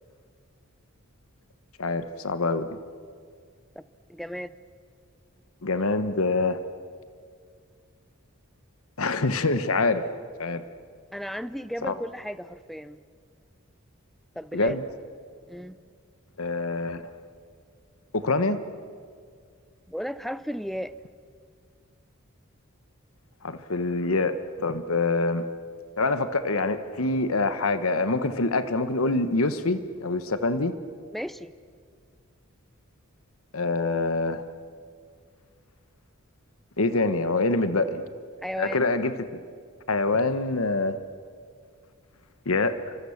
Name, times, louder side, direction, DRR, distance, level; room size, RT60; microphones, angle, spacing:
voice 1, 1.8-2.8 5.6-6.6 9.0-10.1 10.4-10.6 11.9-12.0 14.5-14.8 16.4-17.0 18.1-18.6 23.4-25.5 26.0-30.7 33.5-34.4 36.8-38.1 38.6-39.1 39.9-41.0 42.4-43.0, left 3 dB, 90° left, 11 dB, 1.2 m, -25 dB
voice 2, 4.1-4.5 11.1-13.0 14.4-14.8 15.5-15.8 19.9-20.9 31.1-31.5 38.4-38.9, equal, ahead, 15 dB, 0.6 m, -34 dB
28.5 x 25.0 x 7.2 m, 2.1 s
head